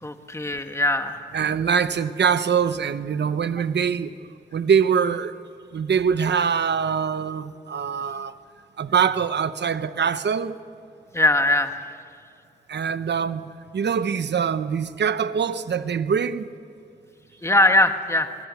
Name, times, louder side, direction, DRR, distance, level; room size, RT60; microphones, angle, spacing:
voice 1, 0.0-1.3 11.1-11.8 17.4-18.3, left 1 dB, 15° left, 1.6 m, -21 dB
voice 2, 1.3-4.1 4.5-5.3 5.7-8.3 8.8-10.6 12.7-16.5, right 7 dB, 80° right, 0.9 m, -23 dB
24.0 x 22.0 x 8.3 m
cardioid pair, 55°, 17 cm